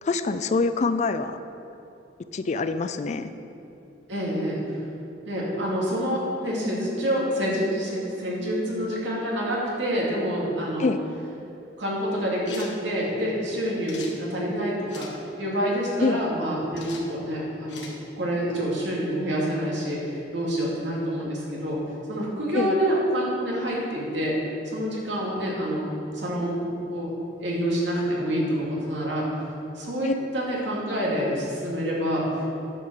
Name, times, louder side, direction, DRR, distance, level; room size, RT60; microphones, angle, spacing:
voice 1, 0.0-1.4 2.3-3.3 10.8-11.0 16.0-16.2 22.5-22.8 30.0-30.1, left 3 dB, 40° left, 11 dB, 0.4 m, -25 dB
voice 2, 4.1-4.8 5.3-10.9 11.8-15.1 15.4-17.8 18.2-21.8 22.1-24.3 24.6-25.9 26.1-27.1 27.4-29.3 29.8-32.4, equal, 80° right, -4 dB, 2.4 m, -27 dB
sound 1, 12.4-12.7 13.8-14.1 14.9-15.1 16.8-17.0 17.7-18.0, left 5 dB, 70° left, 1.4 m, -41 dB
9.9 x 5.6 x 6.3 m, 2.9 s
head